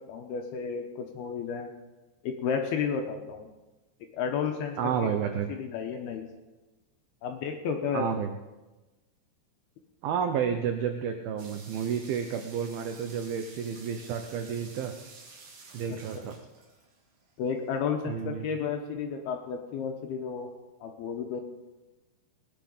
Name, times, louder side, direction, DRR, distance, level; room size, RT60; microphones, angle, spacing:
voice 1, 0.1-1.7 2.2-3.5 4.1-6.3 7.2-8.1 15.9-16.3 17.4-20.5 20.8-21.4, left 6 dB, 75° left, 3 dB, 2.5 m, -32 dB
voice 2, 4.8-5.5 7.9-8.3 10.0-14.9 15.7-16.3 18.1-18.5, right 7 dB, 85° right, 6 dB, 2.1 m, -31 dB
sound 1, 11.4-17.2, right 3 dB, 65° right, 4.8 m, -51 dB
18.5 x 9.7 x 5.4 m, 1.1 s
omnidirectional pair, 5.4 m